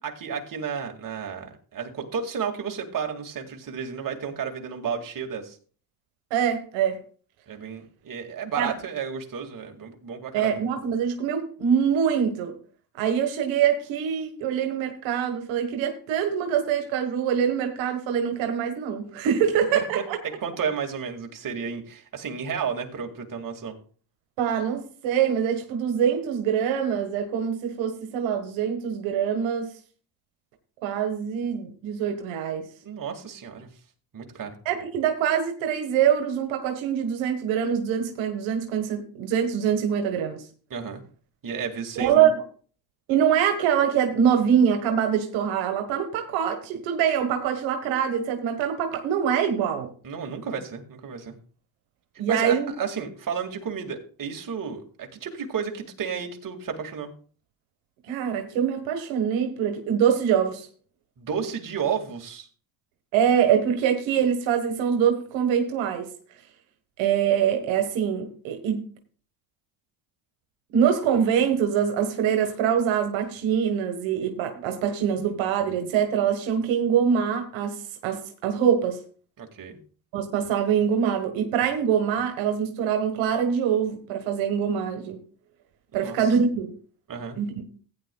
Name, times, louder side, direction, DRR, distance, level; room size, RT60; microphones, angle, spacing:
voice 1, 0.0-5.6 7.5-10.6 19.7-23.8 32.8-33.7 34.1-34.6 40.7-41.0 41.4-42.3 50.0-51.3 52.3-57.1 61.2-62.5 79.4-79.8 85.9-86.4 87.1-87.4, right 6 dB, 45° right, 3 dB, 2.2 m, -32 dB
voice 2, 6.3-7.0 8.6-8.7 10.3-12.5 13.0-20.2 24.4-29.7 30.8-32.7 34.6-40.4 42.0-42.4 43.1-49.9 52.2-52.7 58.1-60.7 63.1-66.1 67.0-68.8 70.7-79.0 80.1-85.2 85.9-86.7 87.4-87.6, right 8 dB, 90° right, 5 dB, 1.4 m, -24 dB
15.5 x 9.6 x 2.3 m, 0.42 s
cardioid pair, 85°, 45 cm